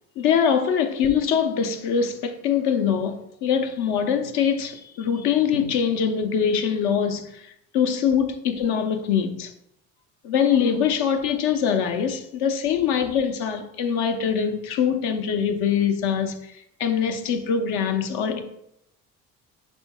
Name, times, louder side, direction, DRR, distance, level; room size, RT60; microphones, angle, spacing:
voice 1, 0.2-7.4 7.7-9.5 10.2-16.5 16.8-18.4, left 7 dB, 60° left, 0.7 m, -23 dB
6.0 x 3.6 x 2.2 m
hypercardioid pair, 55°, 43 cm